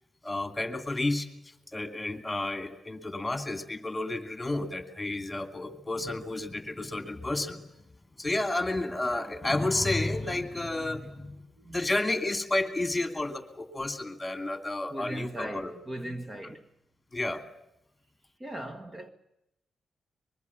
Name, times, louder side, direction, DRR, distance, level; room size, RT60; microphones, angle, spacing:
voice 1, 0.2-1.3 1.7-7.6 8.2-11.4 11.7-15.7 17.1-17.4, left 2 dB, 15° left, 2.6 m, -31 dB
voice 2, 14.9-16.6 18.4-19.1, right 1 dB, 20° right, 1.4 m, -38 dB
24.0 x 21.5 x 7.2 m
cardioid pair, 100°, 0 cm